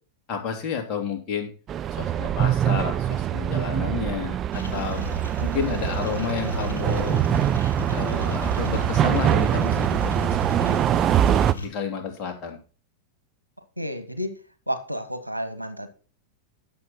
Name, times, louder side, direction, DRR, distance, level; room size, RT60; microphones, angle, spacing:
voice 1, 0.3-1.5 1.9-5.0 5.4-7.3 7.9-10.8 11.5-12.6, left 6 dB, 35° left, 2.7 m, -31 dB
sound 1, 1.7-11.5, right 10 dB, 30° right, 0.5 m, -23 dB
sound 2, 4.5-11.7, left 3 dB, 70° left, 2.8 m, -34 dB
voice 2, 13.8-14.4 14.7-15.9, equal, 90° left, 1.5 m, -31 dB
11.0 x 7.2 x 4.3 m
figure-of-eight pair, 90°, 0 cm